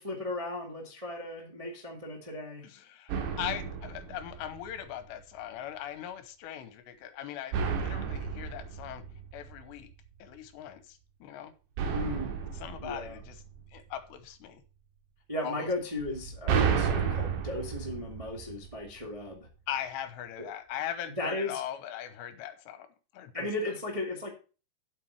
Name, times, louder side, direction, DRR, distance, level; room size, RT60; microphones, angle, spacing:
voice 1, 0.0-2.6 11.9-12.3 12.8-13.2 15.3-19.5 20.4-20.5 21.2-21.5 23.3-24.3, left 2 dB, 25° right, -1 dB, 0.7 m, -36 dB
voice 2, 2.6-9.0 9.3-9.9 10.2-11.5 12.5-13.4 13.7-14.6 15.4-15.7 19.7-22.9 23.1-23.5, left 10 dB, 80° left, 11 dB, 3.1 m, -40 dB
sound 1, 3.1-5.0 7.5-9.9 11.8-14.0 16.0-19.0, right 7 dB, 80° right, 3.6 m, -32 dB
8.4 x 8.1 x 4.6 m, 0.33 s
omnidirectional pair, 5.1 m